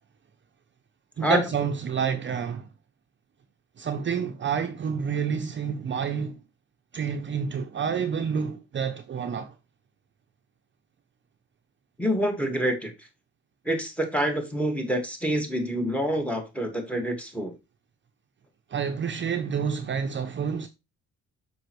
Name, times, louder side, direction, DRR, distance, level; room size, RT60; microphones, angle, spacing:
voice 1, 1.2-2.7 3.8-6.4 6.9-9.5 18.7-20.7, right 7 dB, 40° right, 0.6 m, -29 dB
voice 2, 12.0-12.9 13.7-17.5, equal, 5° left, 1.7 m, -27 dB
6.5 x 5.2 x 3.1 m
cardioid pair, 90°, 30 cm